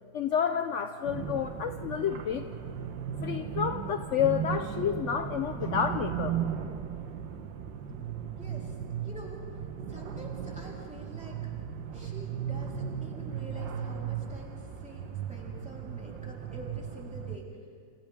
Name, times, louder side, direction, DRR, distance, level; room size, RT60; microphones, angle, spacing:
voice 1, 0.1-2.5 3.2-6.4, left 8 dB, 65° left, 7 dB, 0.7 m, -30 dB
sound 1, 1.0-17.4, right 8 dB, 85° right, 1.8 m, -36 dB
voice 2, 8.4-8.8 9.0-11.5 11.9-17.5, equal, 5° right, -4 dB, 3.7 m, -47 dB
28.5 x 28.0 x 3.6 m, 2.2 s
omnidirectional pair, 2.0 m